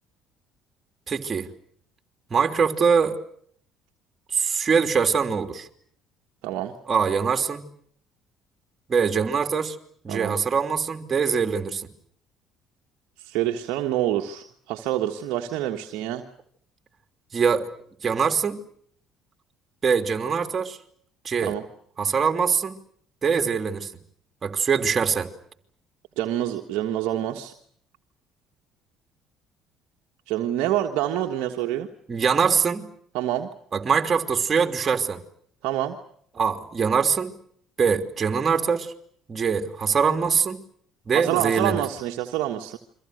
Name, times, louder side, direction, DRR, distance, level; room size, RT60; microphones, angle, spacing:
voice 1, 1.1-1.5 2.3-3.2 4.3-5.7 6.9-7.6 8.9-9.8 10.0-11.9 17.3-17.7 18.0-18.6 19.8-20.8 21.2-21.6 22.0-22.7 23.2-23.9 24.4-25.3 32.1-32.8 33.7-35.2 36.4-37.3 37.8-38.9 39.3-40.6 41.1-41.8, right 6 dB, 35° right, 3.1 m, -23 dB
voice 2, 6.4-6.7 10.1-10.4 13.2-16.2 21.5-21.6 26.2-27.5 30.3-31.9 33.1-33.5 35.6-36.0 41.1-42.8, right 12 dB, 70° right, 1.5 m, -27 dB
29.5 x 24.5 x 6.5 m
hypercardioid pair, 60°, 0 cm